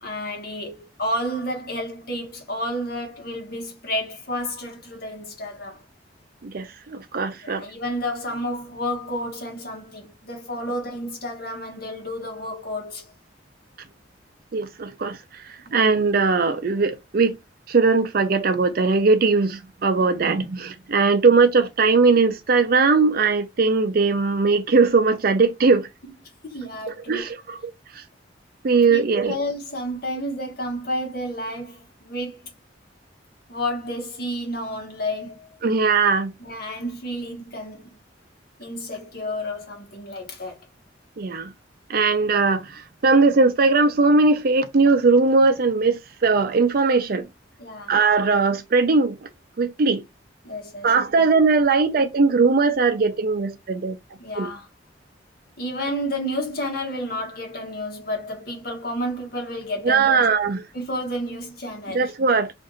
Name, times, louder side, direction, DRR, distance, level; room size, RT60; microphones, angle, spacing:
voice 1, 0.0-5.8 7.4-13.1 15.7-15.8 20.0-20.1 26.4-27.3 28.9-32.5 33.5-35.5 36.4-38.0 38.6-40.6 47.6-48.0 50.4-50.9 54.2-54.7 55.6-60.3 60.7-62.1, equal, 55° left, 1.2 m, -31 dB
voice 2, 6.4-7.7 14.5-17.4 17.7-25.9 27.1-28.0 28.6-29.3 35.6-36.3 41.2-41.5 41.9-47.3 47.9-49.3 49.6-50.0 50.8-54.0 54.4-54.5 59.8-60.6 61.9-62.5, right 4 dB, 50° right, 0.5 m, -20 dB
2.6 x 2.5 x 3.8 m
head